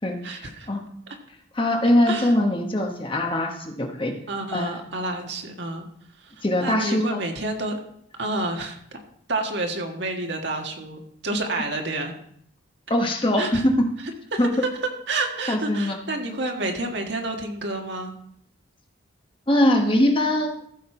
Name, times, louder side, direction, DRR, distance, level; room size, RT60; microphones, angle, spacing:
voice 1, 0.2-0.7 1.1-1.2 2.1-2.4 4.3-5.8 6.2-7.8 8.2-9.0 9.3-12.1 13.4-13.6 14.3-14.7 15.1-18.1, right 2 dB, 60° right, 3 dB, 1.6 m, -29 dB
voice 2, 1.5-4.1 4.5-4.8 6.4-7.2 12.9-13.9 14.4-14.5 15.5-16.0 19.5-20.6, left 1 dB, 25° left, 3 dB, 1.2 m, -22 dB
14.5 x 6.6 x 4.4 m, 0.67 s
head